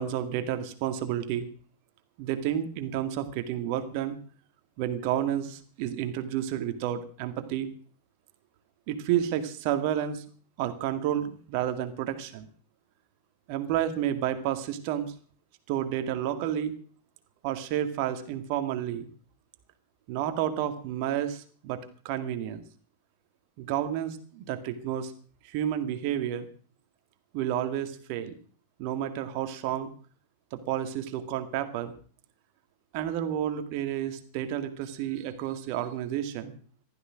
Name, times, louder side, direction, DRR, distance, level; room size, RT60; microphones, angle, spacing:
voice 1, 0.0-1.5 2.2-4.2 4.8-7.7 8.9-10.2 10.6-12.5 13.5-15.1 15.7-16.8 17.4-19.1 20.1-21.8 22.0-22.6 23.6-25.1 25.4-26.5 27.3-28.4 28.8-29.9 30.5-31.9 32.9-36.5, right 10 dB, 45° right, 9 dB, 2.0 m, -30 dB
15.5 x 12.5 x 6.2 m, 0.43 s
figure-of-eight pair, 90°, 0 cm